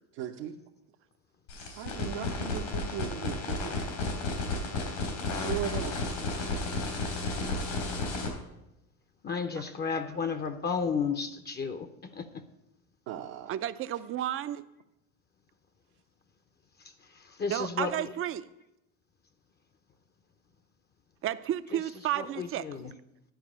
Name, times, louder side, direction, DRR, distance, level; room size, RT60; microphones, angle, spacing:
voice 1, 0.1-0.5 1.8-3.7 5.4-6.0 9.6-9.7 13.1-13.5, right 10 dB, 75° right, 0 dB, 0.9 m, -37 dB
sound 1, 1.5-8.3, left 2 dB, 85° left, 3.7 m, -33 dB
voice 2, 9.2-11.9 12.1-12.4 17.1-18.2 21.7-22.9, left 5 dB, 25° left, 10 dB, 0.6 m, -33 dB
voice 3, 13.5-14.6 17.5-18.5 21.2-22.7, right 12 dB, 35° right, 14 dB, 0.5 m, -32 dB
10.5 x 4.6 x 7.4 m, 0.89 s
supercardioid pair, 95°, 37 cm